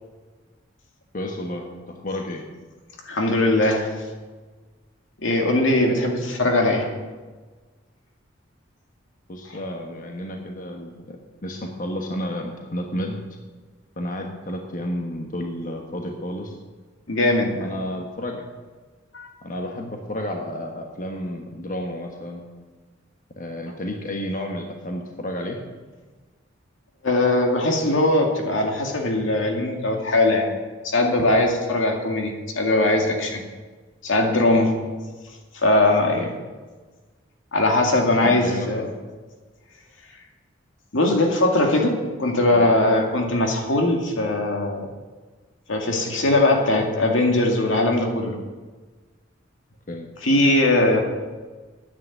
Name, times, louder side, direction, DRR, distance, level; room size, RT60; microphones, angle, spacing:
voice 1, 1.1-2.4 9.3-11.2 11.4-13.2 14.0-16.5 17.6-18.4 19.4-22.4 23.4-25.6 36.1-36.3 38.0-38.9 42.5-42.7 49.9-50.1, left 1 dB, 45° left, 2 dB, 1.2 m, -31 dB
voice 2, 3.1-3.9 5.2-6.9 17.1-17.7 19.1-19.3 27.0-30.5 30.8-33.4 34.0-34.7 35.5-36.3 37.5-38.9 40.9-44.9 45.7-48.4 50.2-51.0, left 2 dB, 80° left, 2 dB, 2.2 m, -20 dB
10.0 x 8.9 x 8.4 m, 1.4 s
head